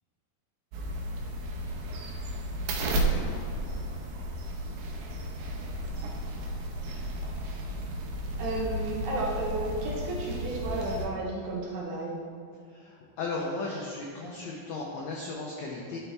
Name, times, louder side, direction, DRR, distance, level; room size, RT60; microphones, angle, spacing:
sound 1, 0.7-11.1, right 1 dB, 85° right, 2.6 m, -33 dB
Fireworks, 2.8-7.9, left 1 dB, 40° left, 1.4 m, -45 dB
voice 1, 8.4-12.2, right 2 dB, 70° right, -3 dB, 2.0 m, -32 dB
voice 2, 12.7-16.0, left 3 dB, 85° left, -2 dB, 1.5 m, -35 dB
11.5 x 5.7 x 3.4 m, 2.2 s
omnidirectional pair, 4.2 m